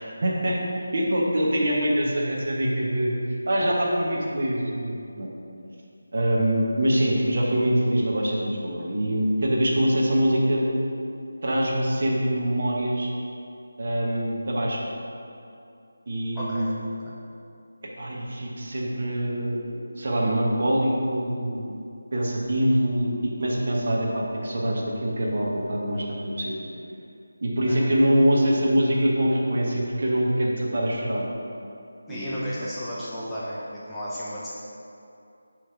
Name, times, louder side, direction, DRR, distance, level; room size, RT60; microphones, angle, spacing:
voice 1, 0.2-3.1 3.5-5.3 6.1-10.7 11.4-13.1 13.8-14.9 16.1-17.0 18.0-21.7 22.1-26.1 26.4-26.5 27.4-31.2 32.1-32.5, equal, 45° right, -3 dB, 0.9 m, -24 dB
voice 2, 16.3-16.7 17.0-17.1 27.7-27.9 32.1-34.5, equal, 5° left, -11 dB, 0.6 m, -33 dB
7.5 x 3.2 x 4.5 m, 2.6 s
figure-of-eight pair, 160°, 0 cm